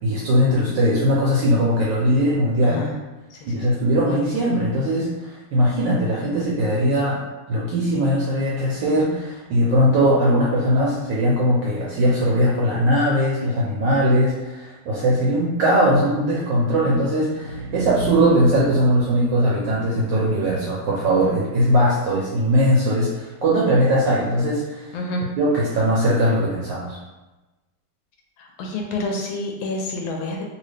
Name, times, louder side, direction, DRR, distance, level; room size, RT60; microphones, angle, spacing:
voice 1, 0.0-2.8 3.4-7.2 7.5-25.0 25.4-27.0, equal, 70° right, -5 dB, 1.2 m, -20 dB
voice 2, 3.3-3.7 24.9-25.3 28.4-30.4, left 2 dB, 75° left, 0 dB, 1.3 m, -28 dB
sound 1, 17.2-23.1, right 2 dB, 85° right, 1.5 m, -36 dB
3.1 x 2.8 x 3.2 m, 1.1 s
omnidirectional pair, 2.3 m